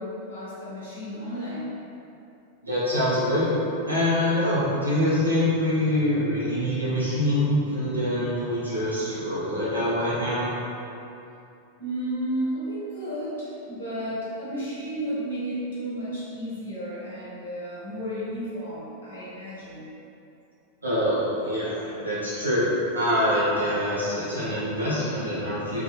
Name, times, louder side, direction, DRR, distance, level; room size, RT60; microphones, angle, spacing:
voice 1, 0.0-1.7 11.8-19.8, equal, 65° left, -9 dB, 1.0 m, -32 dB
voice 2, 2.6-3.5 3.9-10.5 20.8-25.8, left 1 dB, 80° right, -9 dB, 0.7 m, -25 dB
2.7 x 2.4 x 2.2 m, 2.8 s
figure-of-eight pair, 90°, 0 cm